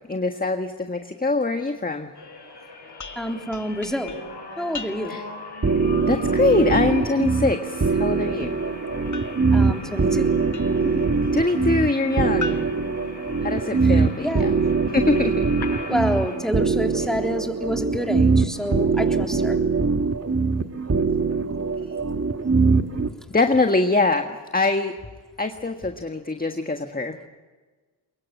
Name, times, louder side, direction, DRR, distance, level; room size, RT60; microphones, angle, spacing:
voice 1, 0.1-2.1 5.1-5.2 6.1-8.6 11.3-12.6 13.4-14.5 14.9-15.4 23.3-24.3 24.5-24.9 25.4-27.3, left 3 dB, 20° left, 6 dB, 1.6 m, -23 dB
sound 1, 2.1-16.4, left 3 dB, 55° left, 7.0 m, -39 dB
sound 2, 3.0-5.4 9.1-11.0 12.4-13.9, left 4 dB, 35° left, 1.8 m, -39 dB
voice 2, 3.2-4.2 4.6-5.2 9.5-10.4 10.8-11.1 13.8-14.6 15.9-19.6, equal, ahead, 3 dB, 3.5 m, -28 dB
sound 3, 5.6-23.1, right 4 dB, 30° right, 1.9 m, -22 dB
24.0 x 21.5 x 8.3 m, 1.4 s
supercardioid pair, 45°, 49 cm